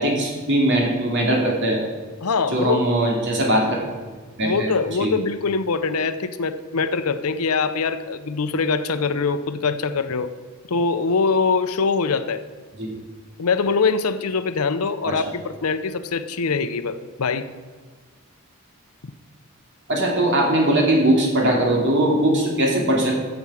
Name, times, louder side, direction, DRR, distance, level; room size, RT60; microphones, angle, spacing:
voice 1, 0.0-1.8 2.5-3.8 4.4-4.7 5.0-5.1 12.8-12.9 15.0-15.2 19.9-23.1, right 1 dB, 55° right, -1 dB, 2.7 m, -20 dB
voice 2, 2.2-2.8 4.4-10.3 10.7-12.4 13.4-17.5, left 4 dB, 85° left, 12 dB, 0.7 m, -23 dB
15.0 x 7.2 x 4.9 m, 1.4 s
head